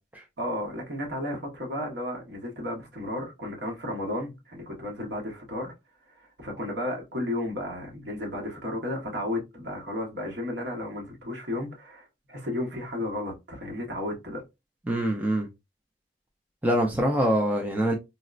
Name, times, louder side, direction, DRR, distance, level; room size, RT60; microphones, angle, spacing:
voice 1, 0.4-5.7 6.1-14.4, left 1 dB, 60° right, 1.2 m, -33 dB
voice 2, 14.9-15.5 16.6-17.9, equal, 10° right, 0.4 m, -24 dB
4.0 x 2.0 x 2.4 m
head